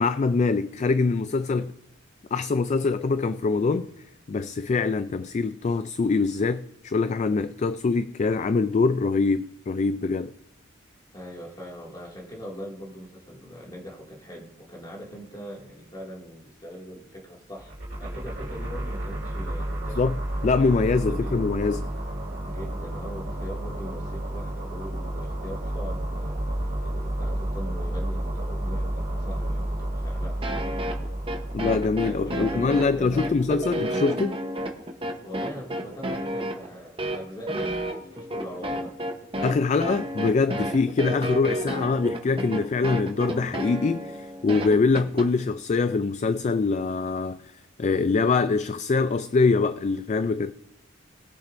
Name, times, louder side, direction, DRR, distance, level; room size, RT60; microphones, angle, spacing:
voice 1, 0.0-1.7 2.3-3.9 4.3-10.3 20.0-20.1 20.4-21.9 31.5-34.4 39.4-47.4 47.8-50.5, left 4 dB, 35° left, 0.3 m, -24 dB
voice 2, 11.1-20.1 20.7-21.4 22.5-26.4 26.8-31.1 32.0-33.4 35.2-38.9, equal, 20° left, 2.2 m, -41 dB
sound 1, 17.6-33.8, right 1 dB, 60° right, 2.9 m, -31 dB
sound 2, 30.4-45.3, right 1 dB, 25° right, 0.9 m, -31 dB
20.0 x 7.2 x 2.6 m
head